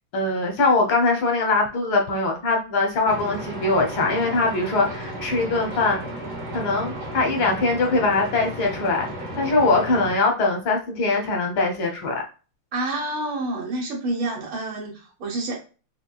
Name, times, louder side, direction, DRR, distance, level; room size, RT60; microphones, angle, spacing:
voice 1, 0.1-6.0 6.5-9.1 9.4-12.2, left 3 dB, 90° left, 2 dB, 1.8 m, -22 dB
sound 1, 3.1-10.2, right 1 dB, 60° right, 1.4 m, -34 dB
voice 2, 12.7-15.6, right 2 dB, 90° right, -1 dB, 2.0 m, -28 dB
5.6 x 2.2 x 2.3 m, 0.34 s
omnidirectional pair, 2.1 m